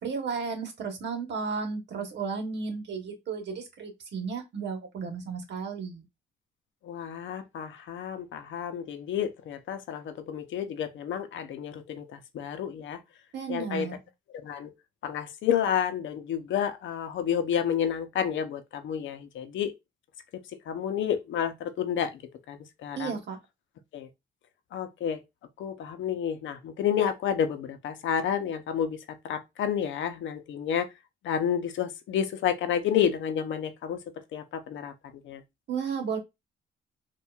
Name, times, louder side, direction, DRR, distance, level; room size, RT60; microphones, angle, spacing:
voice 1, 0.0-6.0 13.3-13.9 23.0-23.4 35.7-36.2, right 5 dB, 60° right, 1.1 m, -33 dB
voice 2, 6.8-13.0 13.5-13.9 14.3-14.7 15.0-19.7 20.7-22.2 22.5-23.1 23.9-24.1 24.7-25.2 25.6-29.0 29.2-30.9 31.2-34.0 34.3-34.9 35.2-35.4, left 8 dB, 70° left, 0.7 m, -30 dB
4.4 x 2.4 x 2.4 m
cardioid pair, 90°, 20 cm